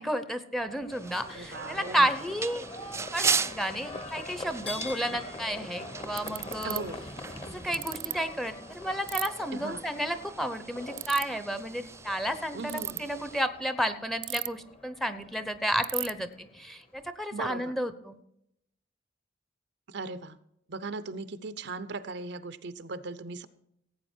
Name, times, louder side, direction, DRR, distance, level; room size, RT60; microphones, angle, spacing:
voice 1, 0.0-2.6 3.1-6.8 7.5-18.2, equal, ahead, 10 dB, 0.8 m, -32 dB
Livestock farm animals working animals, 0.6-17.0, left 2 dB, 30° left, 1.4 m, -44 dB
sound 1, 0.9-13.4, right 5 dB, 15° right, 0.4 m, -38 dB
voice 2, 1.2-2.2 6.6-7.0 9.5-9.8 12.5-13.1 17.3-17.8 19.9-20.4 20.7-23.5, right 3 dB, 65° right, 14 dB, 0.7 m, -38 dB
Ratchet pawl, 5.5-5.6 6.2-6.8 7.7-8.1 9.1-9.3 10.9-11.2 12.6-13.0 14.2-14.7 15.0-15.1 15.3-15.4 15.8-16.1, right 21 dB, 90° right, 0.4 m, -33 dB
16.5 x 8.8 x 4.5 m, 0.77 s
head